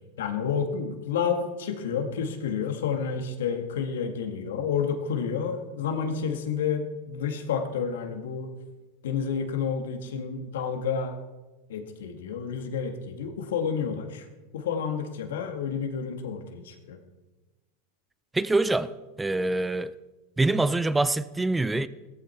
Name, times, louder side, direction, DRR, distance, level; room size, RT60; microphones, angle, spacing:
voice 1, 0.2-8.5 9.0-11.2 11.7-14.3 14.5-17.0, left 6 dB, 90° left, 1.9 m, -30 dB
voice 2, 18.3-18.9 19.2-19.9 20.4-21.9, right 2 dB, 10° right, 0.4 m, -25 dB
16.0 x 14.0 x 4.5 m
supercardioid pair, 135°, 0 cm